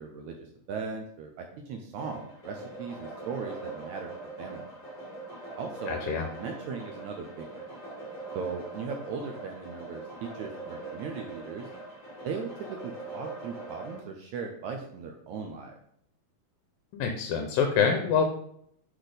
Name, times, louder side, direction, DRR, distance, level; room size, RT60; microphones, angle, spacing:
voice 1, 0.0-4.7 5.6-6.0 6.4-7.7 8.3-11.7 12.2-15.7, right 5 dB, 80° right, 3 dB, 1.7 m, -38 dB
sound 1, 2.0-14.0, right 3 dB, 35° left, 2.1 m, -42 dB
voice 2, 5.9-6.3 16.9-18.3, left 6 dB, 80° left, 4 dB, 2.3 m, -26 dB
6.2 x 4.1 x 5.0 m, 0.70 s
omnidirectional pair, 4.0 m